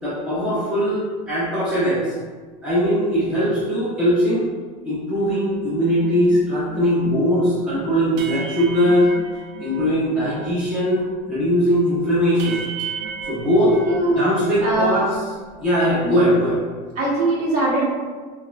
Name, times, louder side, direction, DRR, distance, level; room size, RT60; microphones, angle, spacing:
voice 1, 0.0-2.2 2.6-4.4 4.8-9.1 9.6-12.6 13.3-15.0 15.6-16.6, equal, 5° right, -11 dB, 0.7 m, -20 dB
sound 1, 5.2-10.6 10.9-14.8 15.0-16.2, right 5 dB, 60° right, 0.6 m, -36 dB
voice 2, 13.8-14.2 14.6-15.0 16.0-16.2 16.9-17.8, right 2 dB, 35° right, -8 dB, 1.3 m, -21 dB
6.1 x 2.1 x 2.4 m, 1.5 s
cardioid pair, 175°, 19 cm